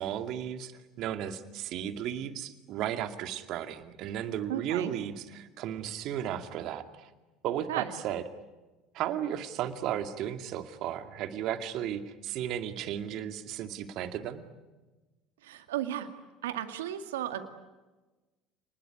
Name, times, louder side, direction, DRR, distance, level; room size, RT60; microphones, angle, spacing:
voice 1, 0.0-7.1 7.4-8.2 8.9-14.4, right 10 dB, 60° right, 8 dB, 2.3 m, -34 dB
voice 2, 4.5-4.9 7.7-7.9 15.4-16.1 16.4-17.5, right 12 dB, 80° right, 8 dB, 2.1 m, -34 dB
29.0 x 20.5 x 10.0 m, 1.2 s
hypercardioid pair, 70°, 0 cm